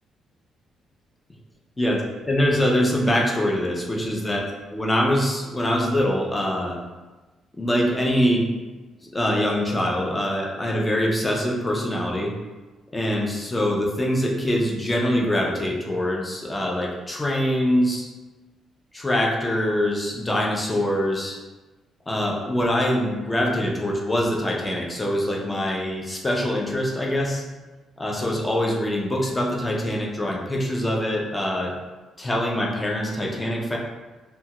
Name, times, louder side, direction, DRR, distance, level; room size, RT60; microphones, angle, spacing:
voice 1, 1.8-4.4 4.7-6.8 7.6-8.5 9.0-12.3 12.9-18.1 18.9-21.4 22.1-27.4 28.0-31.7 32.2-33.8, equal, 20° left, -1 dB, 0.6 m, -24 dB
2.7 x 2.3 x 2.9 m, 1.2 s
cardioid pair, 90°, 0 cm